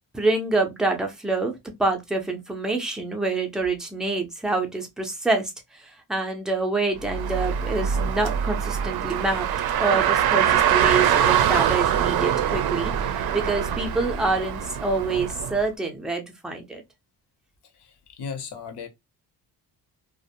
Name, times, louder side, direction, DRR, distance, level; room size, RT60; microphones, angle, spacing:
voice 1, 0.1-9.5 9.8-16.8, right 3 dB, ahead, 0.4 m, -26 dB
Car, 7.0-15.6, right 9 dB, 70° right, 0.5 m, -23 dB
voice 2, 17.6-18.9, left 6 dB, 80° left, 0.8 m, -37 dB
2.5 x 2.1 x 2.7 m
wide cardioid pair, 170°, 39 cm